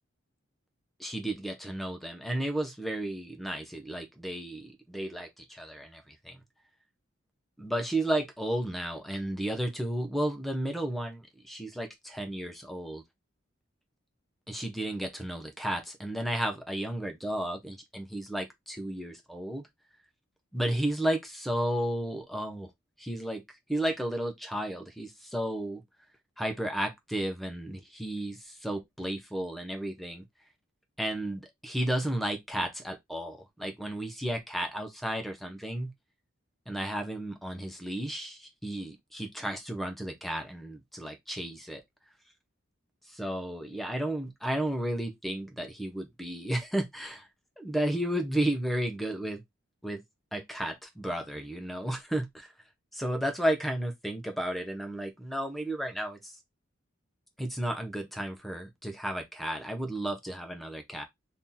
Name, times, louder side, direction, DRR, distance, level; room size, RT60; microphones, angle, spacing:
voice 1, 1.0-6.4 7.6-13.0 14.5-19.6 20.5-22.7 23.0-23.4 23.7-25.8 26.4-30.2 31.0-35.9 36.7-41.8 43.1-47.3 47.6-49.4 49.8-50.0 50.3-52.5 52.9-56.4 57.4-61.0, right 1 dB, ahead, 0.7 m, -33 dB
2.9 x 2.7 x 3.8 m
head